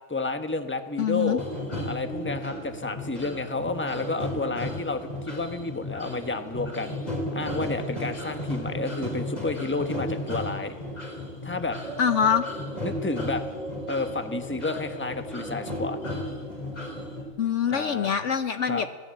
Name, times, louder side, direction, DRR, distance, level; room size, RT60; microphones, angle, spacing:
voice 1, 0.1-1.4 1.8-7.0 7.3-10.7 11.4-11.8 12.8-13.4 13.9-16.0 17.7-18.1 18.6-18.8, left 3 dB, 10° left, 7 dB, 1.2 m, -30 dB
voice 2, 1.0-1.4 12.0-12.4 17.4-19.0, left 7 dB, 60° left, 10 dB, 1.1 m, -24 dB
sound 1, 1.4-17.2, left 1 dB, 30° left, 4.4 m, -34 dB
25.5 x 17.5 x 7.8 m, 1.5 s
omnidirectional pair, 1.5 m